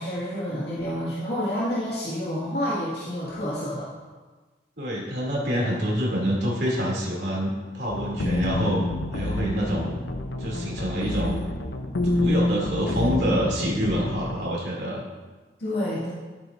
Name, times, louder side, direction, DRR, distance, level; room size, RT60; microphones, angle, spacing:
voice 1, 0.0-3.9 15.6-16.1, equal, 60° left, -9 dB, 2.2 m, -29 dB
voice 2, 4.8-8.8 9.1-9.9 10.4-11.4 12.0-15.0, equal, 65° right, -5 dB, 2.9 m, -26 dB
sound 1, 7.9-14.4, left 1 dB, 90° left, 0.8 m, -28 dB
12.5 x 8.8 x 2.7 m, 1.3 s
head